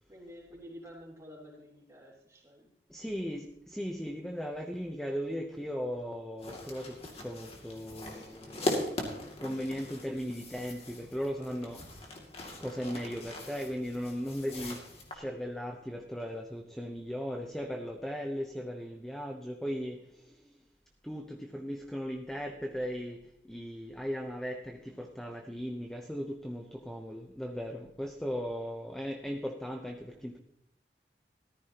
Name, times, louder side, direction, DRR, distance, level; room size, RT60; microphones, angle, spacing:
voice 1, 0.1-2.7, equal, 15° right, -3 dB, 3.5 m, -50 dB
voice 2, 2.9-7.0 7.2-8.7 9.4-11.8 12.6-14.8 15.1-20.0 21.0-23.2 23.5-30.4, equal, 5° left, 3 dB, 0.8 m, -37 dB
sound 1, 6.4-15.1, left 1 dB, 35° left, 2.4 m, -40 dB
14.0 x 14.0 x 2.9 m, 0.79 s
head